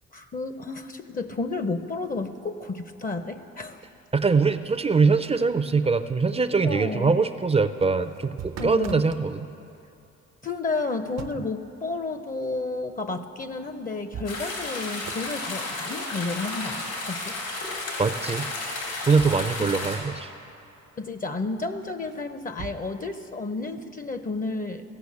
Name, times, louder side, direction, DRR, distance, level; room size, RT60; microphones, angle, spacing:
voice 1, 0.1-3.8 6.6-7.1 8.6-9.1 10.4-17.4 19.6-19.7 21.0-24.8, left 3 dB, 30° left, 9 dB, 0.6 m, -31 dB
voice 2, 4.1-9.5 18.0-18.5 19.0-20.3, right 4 dB, 20° right, 11 dB, 0.5 m, -23 dB
sound 1, 7.8-9.2 10.8-11.6 13.4-13.5 13.9-14.7 15.0-15.4 18.5-19.6 19.8-19.9 21.8-22.8, right 8 dB, 60° right, 0.6 m, -41 dB
sound 2, 14.2-20.0, left 2 dB, 85° left, 3.6 m, -33 dB
15.5 x 6.0 x 8.4 m, 2.7 s
cardioid pair, 90°, 30 cm